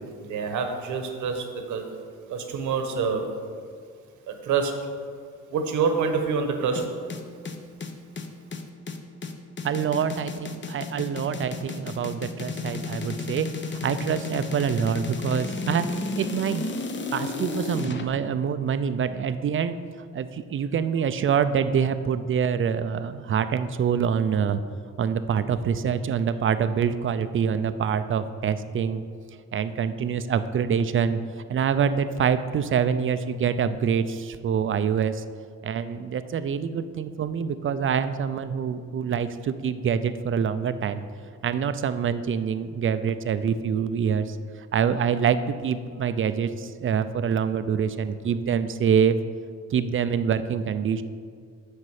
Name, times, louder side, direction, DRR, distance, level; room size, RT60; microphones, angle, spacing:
voice 1, 0.2-1.9 2.3-3.3 4.3-4.8 5.5-6.9, right 5 dB, 75° right, 5 dB, 1.2 m, -26 dB
sound 1, 6.7-18.0, left 4 dB, 40° left, 0.9 m, -33 dB
voice 2, 9.6-16.7 17.1-19.8 20.1-24.6 25.0-29.0 29.5-31.2 31.5-35.2 35.6-41.0 41.4-44.4 44.7-49.2 49.7-51.0, right 7 dB, 40° right, 12 dB, 0.5 m, -25 dB
9.7 x 6.6 x 4.9 m, 2.1 s
cardioid pair, 90°, 30 cm